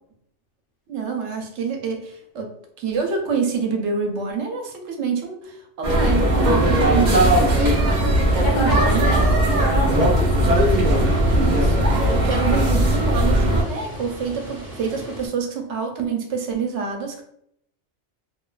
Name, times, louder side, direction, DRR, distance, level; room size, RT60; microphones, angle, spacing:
voice 1, 0.9-7.4 8.3-9.1 11.4-17.2, right 5 dB, 85° right, 3 dB, 0.9 m, -27 dB
sound 1, 5.8-13.6, right 1 dB, 50° right, 0.6 m, -18 dB
voice 2, 8.4-10.7, left 1 dB, 55° left, -2 dB, 0.8 m, -28 dB
Water, 10.2-15.3, equal, 35° right, 1.1 m, -37 dB
2.5 x 2.1 x 2.3 m, 0.71 s
omnidirectional pair, 1.2 m